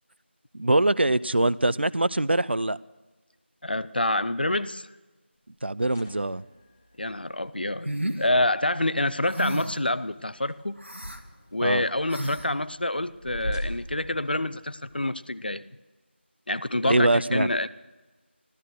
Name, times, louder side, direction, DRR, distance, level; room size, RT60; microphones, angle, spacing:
voice 1, 0.5-2.8 5.6-6.4 11.6-11.8 16.8-17.5, right 1 dB, 60° right, 0.5 m, -23 dB
voice 2, 3.6-4.9 7.0-7.9 8.2-10.8 11.5-15.6 16.5-17.7, left 1 dB, 50° left, 0.6 m, -27 dB
sound 1, 5.6-14.9, equal, 15° left, 0.8 m, -42 dB
sound 2, 7.8-8.2 9.3-9.8 10.8-11.2 12.1-12.5, right 1 dB, 85° right, 1.9 m, -31 dB
15.0 x 13.0 x 6.2 m
figure-of-eight pair, 175°, 6 cm